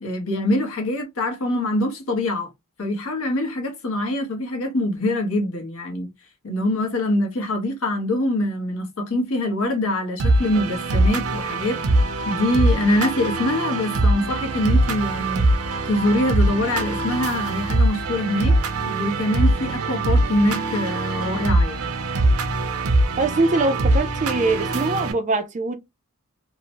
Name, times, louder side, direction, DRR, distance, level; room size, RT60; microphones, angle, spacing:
voice 1, 0.0-2.5 2.8-6.1 6.4-11.8 12.3-15.4 15.9-18.5 18.8-21.9, left 1 dB, 65° left, 1.0 m, -24 dB
sound 1, 10.2-25.1, right 2 dB, 75° right, 0.6 m, -22 dB
voice 2, 23.2-25.7, right 3 dB, 30° right, 0.4 m, -22 dB
2.8 x 2.0 x 2.8 m
head